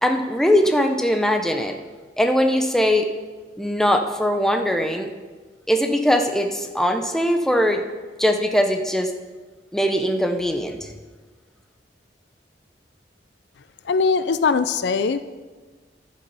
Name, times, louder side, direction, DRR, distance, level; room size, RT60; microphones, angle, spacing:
voice 1, 0.0-1.8 2.2-3.1 3.6-5.1 5.7-7.8 8.2-9.1 9.7-10.9, equal, 5° left, 5 dB, 0.7 m, -21 dB
voice 2, 13.9-15.2, left 4 dB, 70° left, 13 dB, 0.4 m, -20 dB
11.0 x 6.8 x 5.4 m, 1.3 s
head